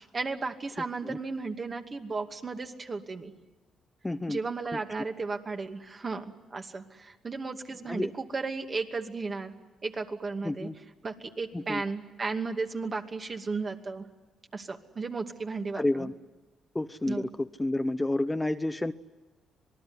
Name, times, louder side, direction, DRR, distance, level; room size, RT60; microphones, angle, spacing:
voice 1, 0.0-3.3 4.3-6.2 6.5-9.5 9.8-10.7 11.0-14.0 14.5-16.1 17.1-17.3, right 4 dB, 40° right, 4 dB, 2.5 m, -34 dB
voice 2, 4.0-4.4 4.7-4.8 7.9-8.1 10.4-10.7 11.5-11.8 15.7-16.1 16.7-18.9, left 2 dB, 15° left, 10 dB, 0.9 m, -30 dB
26.5 x 19.5 x 9.8 m, 1.1 s
supercardioid pair, 65°, 0 cm